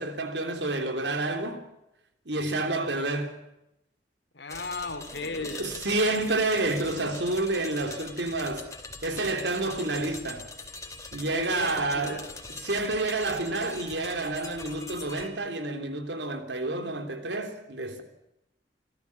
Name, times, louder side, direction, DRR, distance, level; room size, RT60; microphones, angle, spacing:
voice 1, 0.0-1.7 2.2-3.4 5.3-8.7 9.0-10.5 11.1-12.3 12.6-18.0, right 2 dB, 85° right, 3.2 m, -29 dB
voice 2, 4.3-5.7 11.3-12.3, left 3 dB, 85° left, 3.3 m, -36 dB
sound 1, 4.5-15.3, left 3 dB, 20° left, 2.6 m, -43 dB
27.0 x 13.5 x 9.6 m
head